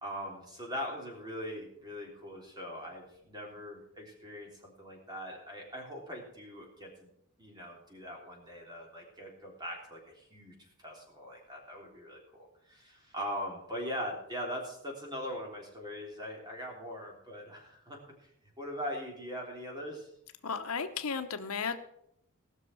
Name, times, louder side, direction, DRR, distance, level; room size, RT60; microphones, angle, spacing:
voice 1, 0.0-7.1 7.4-18.3 18.6-20.1, equal, 20° right, -1 dB, 3.5 m, -41 dB
voice 2, 20.4-21.8, left 5 dB, 80° left, 8 dB, 0.9 m, -34 dB
18.5 x 6.3 x 6.2 m, 0.76 s
head